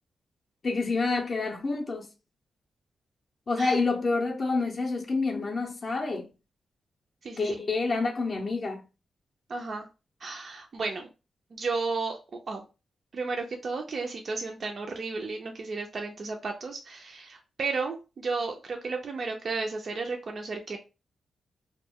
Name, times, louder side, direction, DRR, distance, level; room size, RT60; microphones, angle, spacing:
voice 1, 0.6-2.1 3.5-6.3 7.4-8.8, left 3 dB, 40° left, 0.4 m, -28 dB
voice 2, 9.5-9.9 10.2-11.1 11.5-12.6 13.1-20.8, right 4 dB, 45° right, 0.3 m, -33 dB
2.2 x 2.1 x 3.4 m
wide cardioid pair, 160°, 0 cm